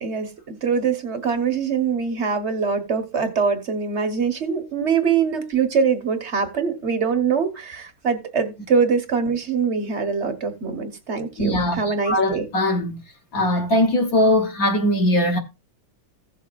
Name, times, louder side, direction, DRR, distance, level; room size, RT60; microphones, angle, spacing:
voice 1, 0.0-12.5, right 6 dB, 40° right, 1.3 m, -23 dB
voice 2, 11.4-13.0 13.3-15.4, left 1 dB, 50° left, 1.6 m, -20 dB
16.0 x 7.0 x 2.5 m
omnidirectional pair, 2.2 m